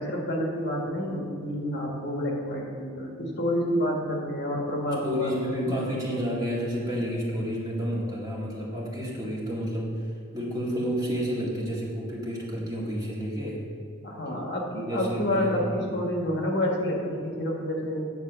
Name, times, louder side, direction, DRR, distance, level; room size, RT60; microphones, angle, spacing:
voice 1, 0.0-5.7 14.0-18.0, equal, 55° left, -1 dB, 1.4 m, -29 dB
voice 2, 5.0-10.0 10.3-13.6 14.9-15.6 15.9-16.0, equal, 20° right, -6 dB, 1.7 m, -30 dB
9.5 x 4.0 x 6.7 m, 2.4 s
head